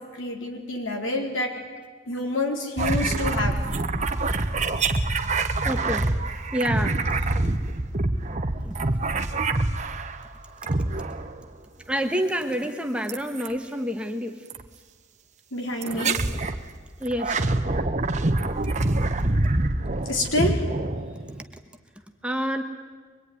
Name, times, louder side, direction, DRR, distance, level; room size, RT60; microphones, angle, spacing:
voice 1, 0.1-1.5 2.1-3.5 15.5-16.2 20.1-20.6, left 2 dB, 80° left, 1 dB, 4.3 m, -27 dB
sound 1, 2.8-10.2 10.6-11.4 13.1-13.5 14.5-14.7 15.8-16.6 17.1-21.4, right 2 dB, 35° right, 1.1 m, -25 dB
voice 2, 5.6-6.1 6.5-7.0 8.6-8.9 11.9-14.4 15.8-16.1 17.0-17.5 21.1-21.2 22.2-22.6, equal, 5° right, 4 dB, 1.4 m, -28 dB
24.0 x 22.0 x 9.8 m, 1.5 s
head